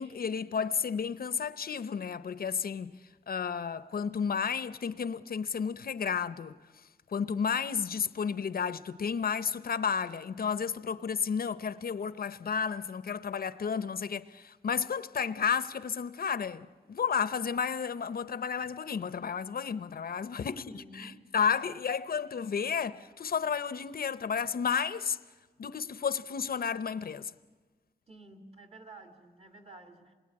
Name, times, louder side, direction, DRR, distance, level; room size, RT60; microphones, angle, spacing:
voice 1, 0.0-2.9 3.3-6.5 7.1-20.6 21.0-25.2 25.6-27.3, left 6 dB, 65° left, 0.8 m, -32 dB
voice 2, 20.4-21.3 28.1-30.1, right 2 dB, 40° right, 2.5 m, -51 dB
27.0 x 21.5 x 9.7 m
wide cardioid pair, 140°, 16 cm